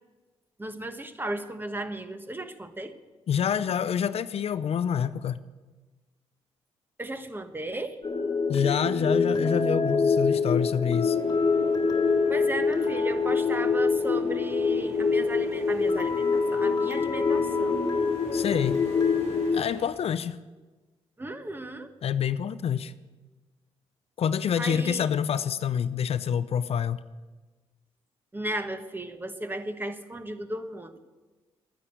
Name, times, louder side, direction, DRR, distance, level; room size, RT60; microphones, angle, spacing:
voice 1, 0.6-2.9 7.0-8.0 12.3-17.8 21.2-21.9 24.6-25.1 28.3-31.0, right 1 dB, 20° right, 9 dB, 1.3 m, -35 dB
voice 2, 3.3-5.4 8.5-11.2 18.3-18.8 19.5-20.4 22.0-22.9 24.2-27.0, left 8 dB, 60° left, 14 dB, 0.5 m, -27 dB
sound 1, 8.0-19.6, left 4 dB, 35° left, 1.5 m, -25 dB
sound 2, 11.1-19.9, right 1 dB, 75° right, 3.5 m, -48 dB
11.0 x 9.8 x 8.2 m, 1.2 s
supercardioid pair, 55°, 11 cm